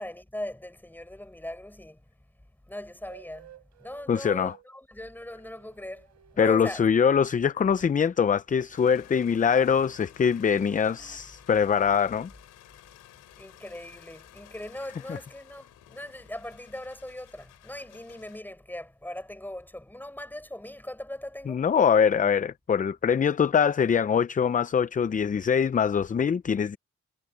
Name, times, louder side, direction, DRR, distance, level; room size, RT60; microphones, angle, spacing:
voice 1, 0.0-2.0 2.7-3.5 3.8-6.8 11.0-11.2 13.3-21.7, left 1 dB, 5° left, 5.1 m, -39 dB
sound 1, 3.1-4.7 5.1-7.0 7.4-9.7 10.1-11.2, right 11 dB, 65° right, 3.8 m, -56 dB
voice 2, 4.1-4.5 6.4-12.3 15.1-15.2 21.5-26.8, left 7 dB, 25° left, 0.5 m, -23 dB
sound 2, 8.7-18.4, left 14 dB, 90° left, 3.1 m, -54 dB
cardioid pair, 90°, 30 cm